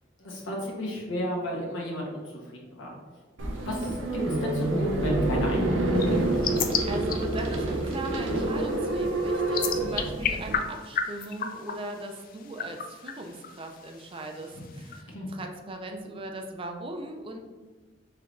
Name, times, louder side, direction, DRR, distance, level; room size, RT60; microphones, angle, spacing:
voice 1, 0.2-2.4 2.7-2.9 3.7-6.2 15.1-15.3, left 1 dB, 85° left, -3 dB, 1.1 m, -32 dB
sound 1, 3.4-10.5, right 2 dB, 90° right, 0.7 m, -27 dB
sound 2, 6.0-15.0, left 7 dB, 50° left, 0.3 m, -35 dB
voice 2, 6.6-17.4, right 2 dB, 30° right, 3 dB, 0.4 m, -38 dB
4.6 x 3.4 x 2.5 m, 1.4 s
head